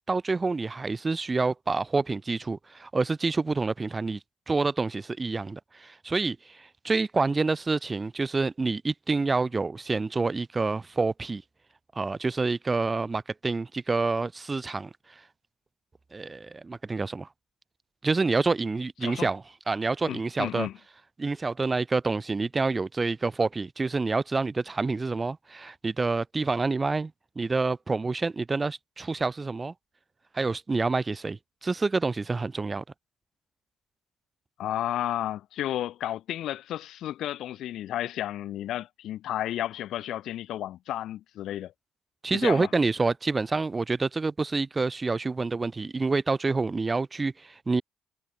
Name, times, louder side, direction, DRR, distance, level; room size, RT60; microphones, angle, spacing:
voice 1, 0.0-4.2 4.5-11.4 12.0-14.9 16.1-17.3 18.0-20.7 21.2-27.1 27.4-29.7 30.3-32.8 42.2-47.8, right 3 dB, 30° right, 0.7 m, -27 dB
voice 2, 20.1-20.7 34.6-41.7 42.3-42.7, left 12 dB, 70° left, 0.5 m, -32 dB
supercardioid pair, 60°, 0 cm